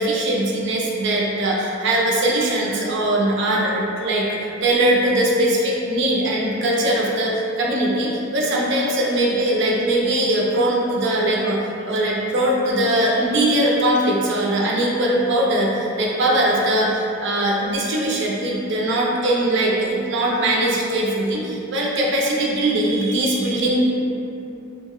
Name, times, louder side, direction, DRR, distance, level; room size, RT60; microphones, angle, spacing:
voice 1, 0.0-11.6 11.9-23.9, right 1 dB, 60° right, -3 dB, 0.4 m, -21 dB
2.4 x 2.1 x 3.6 m, 2.8 s
head